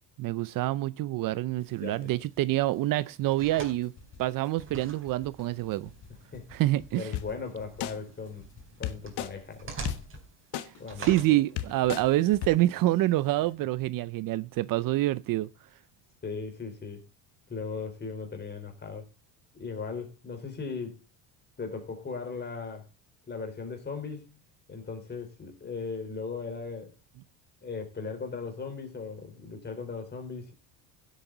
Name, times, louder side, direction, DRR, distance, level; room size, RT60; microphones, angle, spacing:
voice 1, 0.2-3.9 4.2-5.9 6.5-7.1 10.6-15.5, right 16 dB, 55° right, 0.6 m, -27 dB
sound 1, 1.6-13.5, right 4 dB, 30° right, 4.2 m, -47 dB
voice 2, 1.8-2.1 6.3-6.5 7.0-8.5 8.8-9.7 10.8-11.2 16.2-17.0 17.5-19.0 19.5-21.0 21.6-22.9 23.3-24.4 24.7-26.9 27.6-30.5, left 5 dB, 25° left, 4.1 m, -38 dB
sound 2, 3.8-10.5 10.7-12.6, left 4 dB, 45° left, 5.4 m, -54 dB
sound 3, 7.1-7.2 7.8-7.9 8.8-9.3 9.8-10.0 10.5-10.6 11.2-11.3 11.6-12.0 12.4-12.5, left 13 dB, 65° left, 1.4 m, -32 dB
16.0 x 8.3 x 3.9 m
cardioid pair, 125°, 42 cm